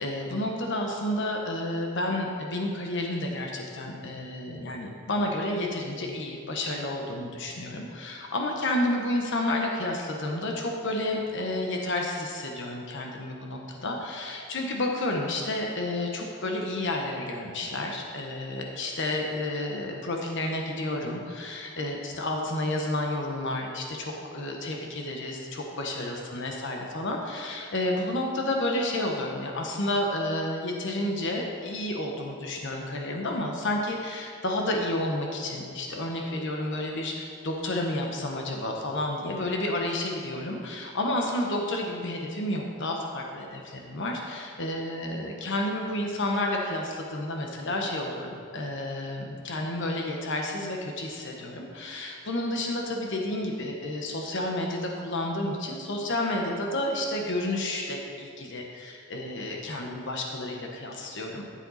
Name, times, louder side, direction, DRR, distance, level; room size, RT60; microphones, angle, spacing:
voice 1, 0.0-61.5, left 1 dB, 60° left, 1 dB, 1.1 m, -30 dB
13.5 x 7.5 x 4.2 m, 2.3 s
head